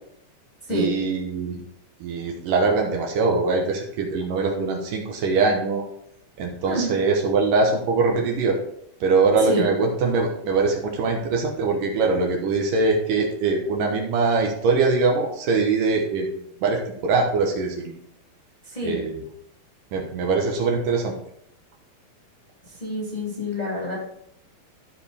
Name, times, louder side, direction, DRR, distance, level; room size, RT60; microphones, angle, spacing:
voice 1, 0.7-1.6 2.0-5.8 6.4-8.6 9.0-16.3 16.6-17.9 18.8-19.2 19.9-21.1, right 4 dB, 70° right, 1 dB, 2.7 m, -22 dB
voice 2, 18.6-19.0 22.8-24.0, left 1 dB, 15° left, -4 dB, 2.2 m, -27 dB
14.0 x 5.2 x 3.5 m, 0.71 s
omnidirectional pair, 4.1 m